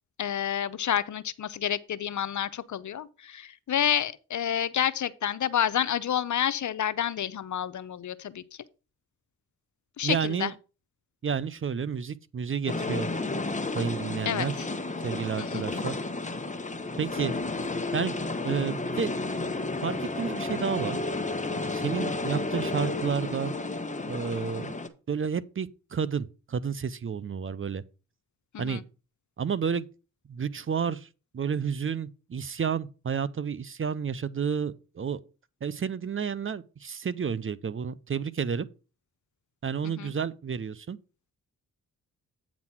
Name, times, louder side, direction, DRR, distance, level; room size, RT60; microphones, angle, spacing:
voice 1, 0.2-8.4 10.0-10.5 14.2-14.7 15.4-15.6 28.5-28.8 39.8-40.1, left 9 dB, 55° left, 0.7 m, -29 dB
voice 2, 10.0-10.5 11.2-13.1 13.7-14.5 15.0-15.9 17.0-17.3 17.9-18.1 18.4-19.1 19.8-21.0 21.5-23.5 24.0-24.7 25.1-27.8 28.6-28.8 29.4-29.9 30.3-31.1 31.3-35.2 35.6-38.7 39.6-41.0, right 6 dB, 35° right, 0.6 m, -30 dB
sound 1, 12.7-24.9, left 2 dB, 20° left, 1.1 m, -32 dB
8.6 x 4.1 x 5.9 m
supercardioid pair, 45°, 36 cm